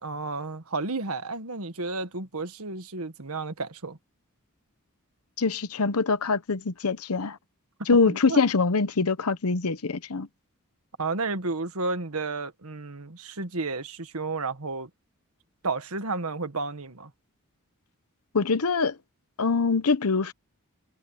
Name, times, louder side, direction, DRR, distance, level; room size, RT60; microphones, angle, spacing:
voice 1, 0.0-4.0 8.1-8.4 11.0-14.9 15.6-17.1, right 3 dB, 85° right, 1.7 m, -32 dB
voice 2, 5.4-7.4 7.9-10.3 18.3-18.9 19.4-20.3, left 4 dB, 90° left, 0.9 m, -24 dB
head